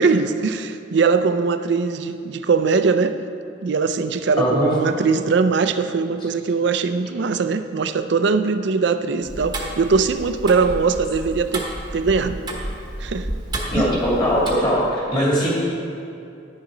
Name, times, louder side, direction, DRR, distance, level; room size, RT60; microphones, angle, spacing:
voice 1, 0.0-3.2 3.6-11.7 11.9-12.4 13.0-13.3 13.8-13.9, right 4 dB, 60° right, 10 dB, 0.4 m, -21 dB
voice 2, 4.4-4.7 13.7-15.5, equal, 25° left, -6 dB, 2.3 m, -20 dB
Tick-tock, 9.2-14.5, right 1 dB, 20° right, 1.0 m, -31 dB
10.0 x 6.6 x 4.9 m, 2.5 s
head